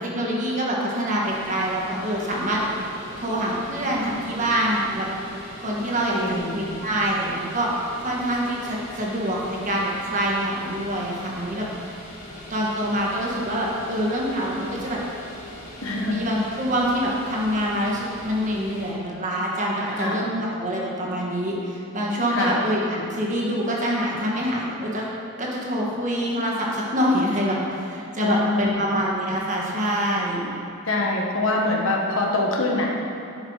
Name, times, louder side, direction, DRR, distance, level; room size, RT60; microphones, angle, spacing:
voice 1, 0.1-2.7 3.2-5.1 5.6-6.2 6.5-7.7 8.0-11.7 12.5-15.0 16.1-25.1 25.4-30.5, equal, 35° right, -3 dB, 1.5 m, -25 dB
sound 1, 1.2-18.9, left 1 dB, 35° left, 1.8 m, -41 dB
voice 2, 6.1-6.7 15.8-16.3 19.9-20.2 22.3-22.6 28.2-28.9 30.8-32.8, left 2 dB, 60° left, -1 dB, 1.2 m, -24 dB
11.0 x 5.6 x 4.7 m, 2.8 s
head